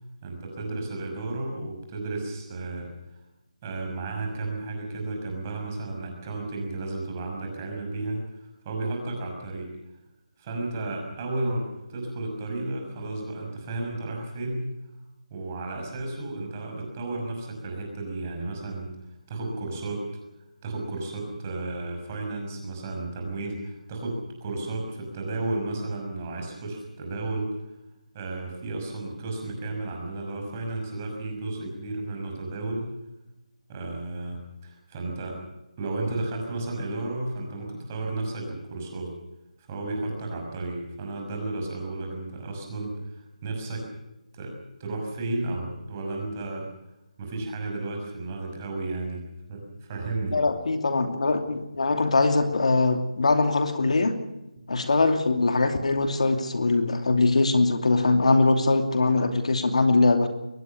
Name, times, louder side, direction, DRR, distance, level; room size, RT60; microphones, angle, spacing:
voice 1, 0.2-2.9 3.6-9.8 10.4-14.7 15.3-19.0 19.3-20.1 20.6-27.5 28.1-32.9 33.7-35.4 35.8-39.2 39.6-43.9 44.3-46.7 47.2-50.4 54.6-54.7, right 2 dB, 20° right, 2 dB, 6.1 m, -33 dB
voice 2, 50.3-54.2 54.7-60.3, left 3 dB, 55° left, 6 dB, 2.9 m, -22 dB
22.5 x 20.0 x 6.8 m, 0.95 s
figure-of-eight pair, 175°, 4 cm